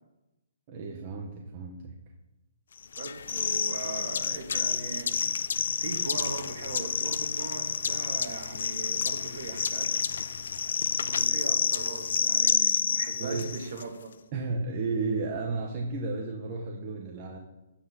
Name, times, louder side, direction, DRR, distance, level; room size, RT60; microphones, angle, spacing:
voice 1, 0.7-2.0 13.2-13.5 14.3-17.4, right 3 dB, 30° right, -1 dB, 0.8 m, -33 dB
sound 1, 2.9-13.8, left 6 dB, 70° left, 0.4 m, -29 dB
voice 2, 3.0-5.2 5.8-9.9 11.0-14.1, right 3 dB, 55° right, 4 dB, 1.4 m, -39 dB
9.4 x 8.5 x 2.8 m, 0.99 s
hypercardioid pair, 160°, 0 cm